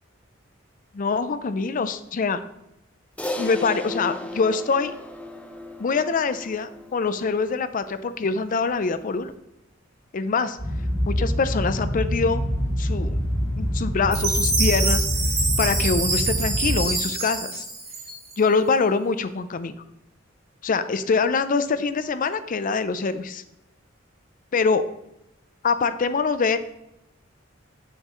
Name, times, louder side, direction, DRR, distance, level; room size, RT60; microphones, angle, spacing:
voice 1, 0.9-2.4 3.4-4.9 5.8-9.3 10.1-10.6 11.1-12.4 12.8-13.2 13.6-15.0 15.6-17.6 18.4-19.7 20.6-23.4 24.5-24.8 25.6-26.6, left 4 dB, 45° left, 12 dB, 0.4 m, -24 dB
Crash cymbal, 3.2-7.8, left 1 dB, 5° left, 0.7 m, -35 dB
sound 1, 10.6-16.8, equal, 75° left, 2.7 m, -25 dB
Chime, 14.1-18.5, right 3 dB, 35° right, 2.5 m, -26 dB
6.7 x 6.5 x 3.0 m, 0.85 s
head